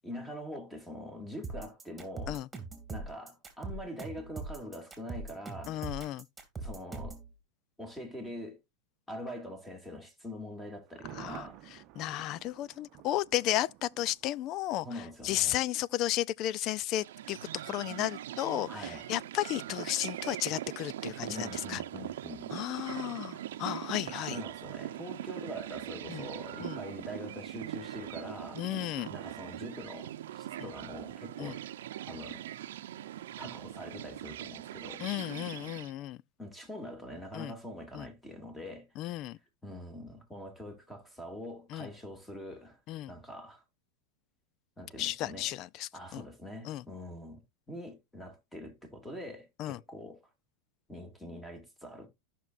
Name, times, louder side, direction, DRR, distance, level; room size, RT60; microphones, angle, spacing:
voice 1, 0.0-2.4 2.9-5.8 6.6-7.2 7.8-8.6 9.1-11.6 14.8-15.6 18.7-19.1 21.3-22.5 24.3-28.6 29.1-31.6 32.1-32.4 33.4-35.1 36.4-38.9 39.2-39.3 39.6-42.8 43.1-43.6 44.8-45.5 45.9-47.4 47.7-50.2 50.9-52.1, left 1 dB, 5° left, 2.4 m, -44 dB
sound 1, 1.4-7.3, right 3 dB, 10° right, 2.6 m, -41 dB
voice 2, 5.7-6.2 11.1-11.5 12.0-14.9 15.2-17.4 17.6-21.8 22.5-24.4 26.1-26.3 26.6-26.8 28.6-29.1 30.6-30.7 31.4-31.5 35.0-36.2 37.3-37.5 37.9-38.1 39.0-39.4 41.7-41.9 42.9-43.1 45.0-46.2 46.6-46.8 49.6-49.8, left 14 dB, 40° left, 0.4 m, -33 dB
Thunder, 10.9-14.8 15.1-15.2, right 13 dB, 45° right, 0.8 m, -51 dB
sound 2, 17.0-35.9, right 12 dB, 85° right, 0.8 m, -41 dB
14.0 x 6.0 x 2.6 m
supercardioid pair, 145°, 0 cm